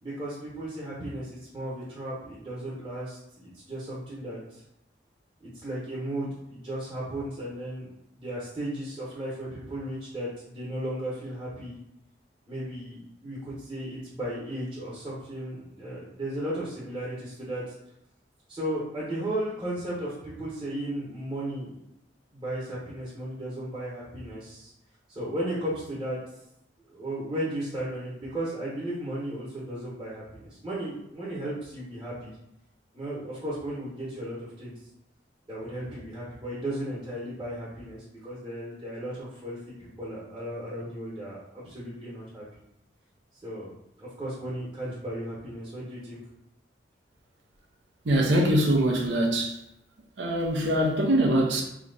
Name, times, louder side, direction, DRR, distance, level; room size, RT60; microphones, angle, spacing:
voice 1, 0.0-4.6 5.6-7.9 8.2-11.8 12.5-17.7 18.5-21.8 22.3-24.7 25.1-26.2 26.9-32.4 32.9-34.7 35.5-42.4 43.4-43.7 44.0-46.2, right 1 dB, 25° right, 1.1 m, -35 dB
voice 2, 48.0-49.6 50.2-51.6, right 1 dB, 75° right, 0.7 m, -23 dB
3.0 x 2.3 x 3.8 m
head